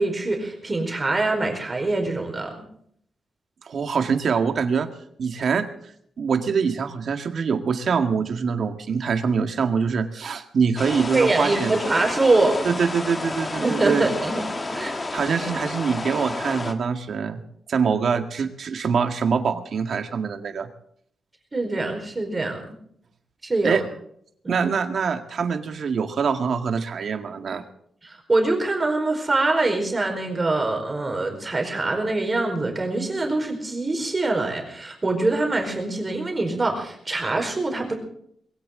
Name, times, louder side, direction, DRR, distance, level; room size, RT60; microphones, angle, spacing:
voice 1, 0.0-2.5 11.1-12.6 13.5-14.4 14.7-14.9 21.5-22.6 23.4-23.8 24.4-24.7 28.0-37.9, right 2 dB, 25° right, 3 dB, 4.6 m, -24 dB
voice 2, 3.6-4.9 5.2-5.7 6.2-11.7 12.6-14.1 15.1-17.4 17.7-20.7 23.6-23.8 24.5-27.6, right 6 dB, 60° right, 7 dB, 1.9 m, -24 dB
sound 1, 10.8-16.7, left 2 dB, 25° left, 1.8 m, -30 dB
21.0 x 17.0 x 3.9 m, 0.67 s
wide cardioid pair, 135°, 0 cm